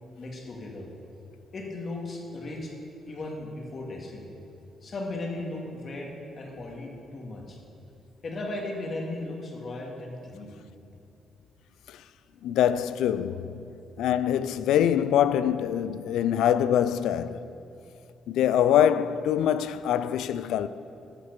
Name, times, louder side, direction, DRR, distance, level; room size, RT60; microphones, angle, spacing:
voice 1, 0.2-0.9 1.5-2.7 3.0-4.3 4.8-7.6 8.2-10.6, left 2 dB, 45° left, 2.2 m, -36 dB
voice 2, 12.4-13.6 14.0-17.4 18.3-20.7, left 10 dB, 85° left, 0.4 m, -24 dB
13.0 x 6.4 x 6.7 m
cardioid pair, 90°, 0 cm